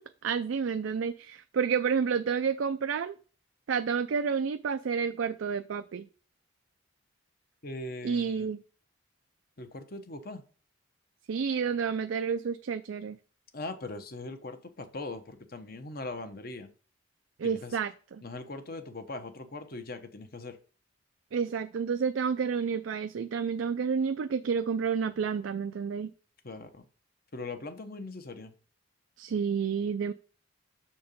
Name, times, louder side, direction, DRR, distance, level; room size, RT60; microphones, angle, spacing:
voice 1, 0.2-3.2 3.7-6.1 8.0-8.6 11.3-13.2 17.4-18.2 21.3-26.1 29.2-30.1, right 6 dB, 75° right, 0.4 m, -30 dB
voice 2, 7.6-8.5 9.6-10.4 13.5-16.7 17.4-17.8 18.2-20.6 26.4-26.8 27.3-28.5, left 2 dB, 50° left, 1.0 m, -40 dB
6.7 x 4.4 x 5.3 m
head